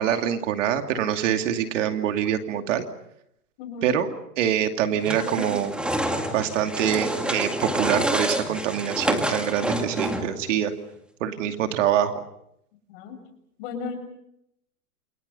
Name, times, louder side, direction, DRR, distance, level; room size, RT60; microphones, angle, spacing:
voice 1, 0.0-2.8 3.8-4.1 4.4-5.7 6.3-10.7 11.2-12.2, right 10 dB, 55° right, 7 dB, 2.6 m, -25 dB
voice 2, 3.6-4.0 12.9-13.2 13.6-13.9, left 5 dB, 40° left, 6 dB, 7.1 m, -34 dB
sound 1, 5.0-10.4, right 1 dB, ahead, 2.0 m, -27 dB
29.0 x 28.0 x 5.6 m, 0.76 s
hypercardioid pair, 160°, 46 cm